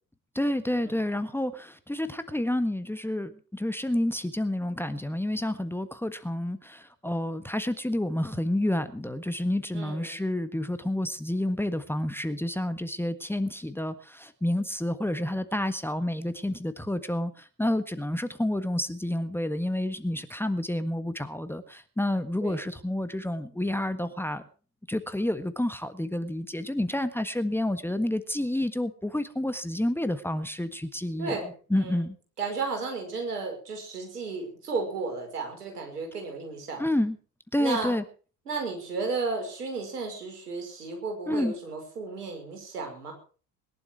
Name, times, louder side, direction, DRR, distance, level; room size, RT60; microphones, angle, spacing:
voice 1, 0.3-24.4 24.9-31.4 31.7-32.1 36.8-37.2 37.5-38.0 41.3-41.5, left 1 dB, 5° left, 10 dB, 1.5 m, -29 dB
voice 2, 9.7-10.2 22.4-22.6 31.2-32.0 32.4-36.9 37.6-37.9 38.5-43.1, right 4 dB, 80° right, 3 dB, 5.7 m, -33 dB
21.5 x 11.5 x 4.7 m, 0.39 s
figure-of-eight pair, 60°, 46 cm